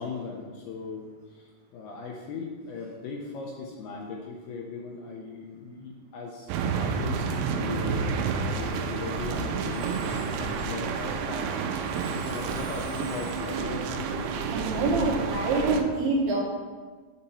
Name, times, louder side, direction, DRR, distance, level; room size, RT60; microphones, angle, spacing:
voice 1, 0.0-8.0 8.5-11.6 12.1-14.4, left 4 dB, 80° left, 0 dB, 2.4 m, -38 dB
sound 1, 6.5-15.8, right 5 dB, 90° right, 3.0 m, -30 dB
Musical instrument, 7.9-15.2, left 1 dB, 35° left, 1.2 m, -42 dB
voice 2, 14.5-16.4, right 3 dB, 75° right, -5 dB, 2.9 m, -26 dB
7.4 x 6.6 x 4.2 m, 1.4 s
omnidirectional pair, 5.2 m